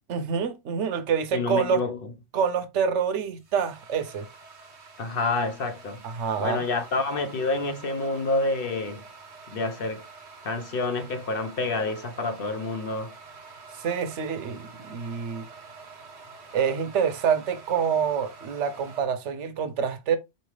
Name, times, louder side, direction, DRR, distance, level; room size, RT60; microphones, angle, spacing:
voice 1, 0.1-1.8 2.3-4.3 6.0-6.6 13.7-15.5 16.5-20.2, right 7 dB, 85° right, 1.0 m, -27 dB
voice 2, 1.3-2.0 5.0-6.0 6.4-9.0 9.5-10.0 10.4-13.1, left 3 dB, 55° left, 0.9 m, -28 dB
sound 1, 2.8-19.0, right 4 dB, 70° right, 1.3 m, -47 dB
4.3 x 3.1 x 3.2 m
omnidirectional pair, 1.2 m